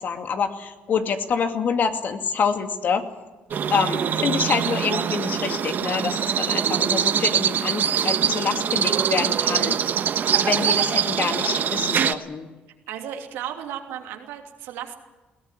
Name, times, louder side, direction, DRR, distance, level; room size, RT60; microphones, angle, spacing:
voice 1, 0.0-3.1 3.7-9.8 10.4-12.5, left 6 dB, 55° left, 6 dB, 2.4 m, -26 dB
sound 1, 3.5-12.1, right 8 dB, 55° right, 1.3 m, -23 dB
voice 2, 12.9-15.0, right 10 dB, 90° right, 3 dB, 2.9 m, -34 dB
21.0 x 17.0 x 9.8 m, 1.1 s
cardioid pair, 85°, 4 cm